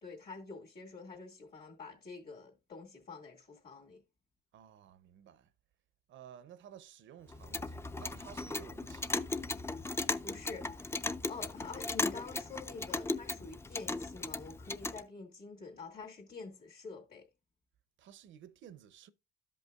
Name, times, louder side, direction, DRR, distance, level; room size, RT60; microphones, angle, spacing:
voice 1, 0.0-4.0 10.2-10.9 11.3-17.3, left 4 dB, 50° left, 2.1 m, -47 dB
voice 2, 4.5-5.5 6.1-9.2 18.0-19.1, right 9 dB, 70° right, 0.6 m, -54 dB
Clock, 7.3-15.0, left 2 dB, 15° left, 0.4 m, -37 dB
13.0 x 5.4 x 2.3 m
cardioid pair, 90°, 20 cm